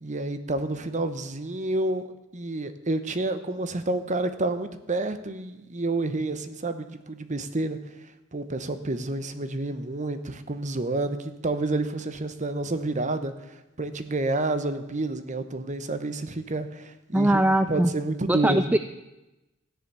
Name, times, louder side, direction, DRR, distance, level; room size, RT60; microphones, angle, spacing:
voice 1, 0.0-2.1 2.3-18.8, right 2 dB, 35° right, 10 dB, 1.0 m, -29 dB
voice 2, 17.1-17.9 18.3-18.8, right 1 dB, 10° right, 10 dB, 0.4 m, -21 dB
14.0 x 9.9 x 6.9 m, 1.0 s
head